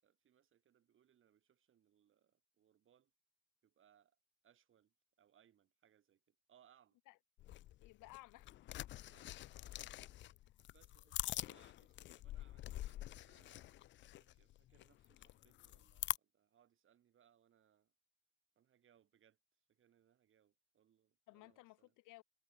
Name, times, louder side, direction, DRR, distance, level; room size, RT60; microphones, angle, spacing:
voice 1, 0.0-3.1 3.6-4.2 4.4-7.0 9.1-9.6 10.7-11.2 11.4-13.8 14.2-17.9 18.5-19.4 19.7-21.9, right 9 dB, 40° right, 4.8 m, -73 dB
sound 1, 7.4-16.2, left 14 dB, 40° left, 0.4 m, -46 dB
voice 2, 7.8-8.8 21.3-22.2, left 20 dB, 75° left, 5.2 m, -59 dB
cardioid pair, 145°, 31 cm